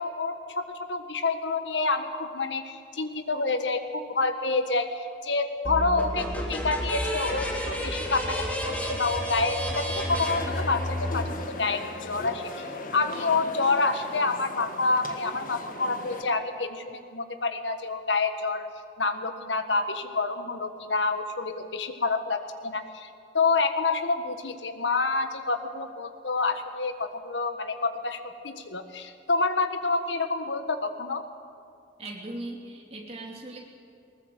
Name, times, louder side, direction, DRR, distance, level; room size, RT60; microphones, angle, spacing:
voice 1, 0.0-18.7 19.0-23.1 23.3-31.2, left 3 dB, 85° left, 8 dB, 1.6 m, -28 dB
sound 1, 5.6-11.3, equal, 10° left, 3.2 m, -31 dB
sound 2, 10.1-16.2, left 2 dB, 50° left, 1.6 m, -38 dB
voice 2, 32.0-33.6, right 2 dB, 35° right, 0 dB, 2.9 m, -39 dB
20.0 x 19.0 x 8.0 m, 2.5 s
head